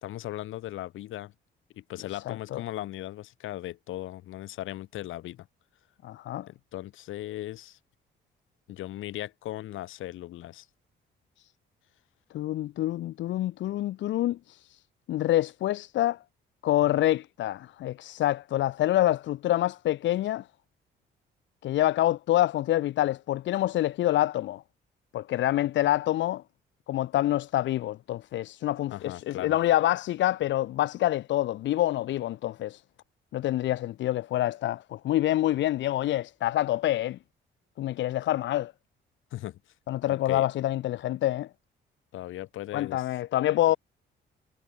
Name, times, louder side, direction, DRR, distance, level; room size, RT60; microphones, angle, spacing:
voice 1, 0.0-1.3 1.8-5.5 6.5-7.8 8.7-10.7 28.9-29.6 39.3-39.6 40.1-40.5 42.1-43.0, left 14 dB, 85° left, 2.6 m, -38 dB
voice 2, 2.1-2.6 6.0-6.5 12.3-14.8 15.1-16.2 16.6-20.5 21.6-24.6 25.1-26.4 26.9-32.8 33.3-37.2 37.8-38.7 39.9-41.5 42.7-43.8, left 14 dB, 70° left, 0.6 m, -26 dB
cardioid pair, 90°, 20 cm